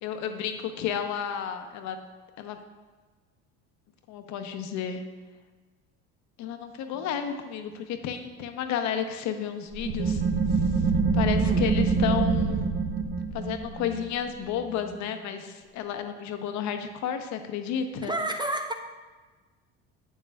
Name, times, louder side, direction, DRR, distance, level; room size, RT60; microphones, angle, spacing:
voice 1, 0.0-2.0 2.4-2.6 4.1-5.0 6.4-10.2 10.5-10.6 11.1-12.6 13.3-18.2, left 8 dB, 65° left, 7 dB, 0.8 m, -32 dB
sound 1, 9.7-15.1, right 4 dB, 35° right, 0.8 m, -26 dB
voice 2, 18.0-18.7, right 1 dB, 15° right, 6 dB, 0.4 m, -30 dB
8.0 x 7.6 x 2.3 m, 1.3 s
supercardioid pair, 95°, 31 cm